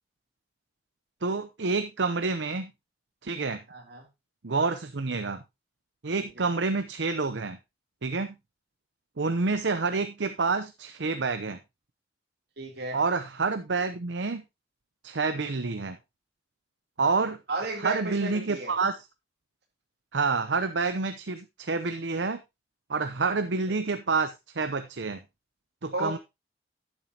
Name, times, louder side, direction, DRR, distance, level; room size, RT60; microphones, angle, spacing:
voice 1, 1.2-2.7 3.2-3.6 4.4-5.4 6.0-7.6 8.0-8.4 9.2-11.6 12.9-14.4 15.0-16.0 17.0-17.4 17.8-19.1 20.1-22.4 22.9-25.2 25.8-26.2, right 4 dB, 75° right, 9 dB, 0.8 m, -28 dB
voice 2, 3.7-4.1 6.2-6.5 12.6-13.0 17.5-18.7 25.9-26.2, right 2 dB, 60° right, 2 dB, 3.3 m, -33 dB
11.0 x 9.1 x 2.9 m, 0.23 s
head